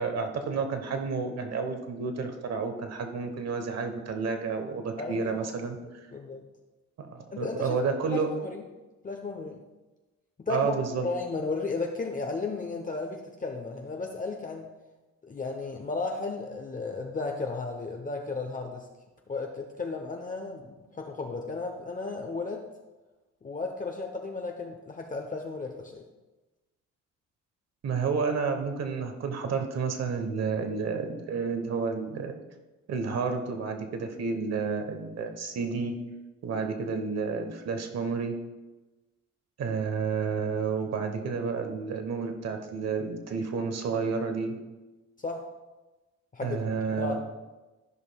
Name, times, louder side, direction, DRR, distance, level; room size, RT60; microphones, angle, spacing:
voice 1, 0.0-6.0 7.0-8.3 10.5-11.1 27.8-32.3 32.9-36.0 36.4-38.3 39.6-44.5 46.4-47.2, right 5 dB, 60° right, 6 dB, 1.1 m, -30 dB
voice 2, 5.0-5.4 6.1-6.5 7.3-7.7 8.1-8.6 9.0-9.6 10.4-10.7 11.0-14.7 15.3-18.9 19.3-22.7 23.4-26.0 45.2-45.5 46.3-47.2, left 3 dB, 25° left, 2 dB, 0.8 m, -34 dB
13.5 x 5.3 x 2.3 m, 1.1 s
cardioid pair, 90°, 30 cm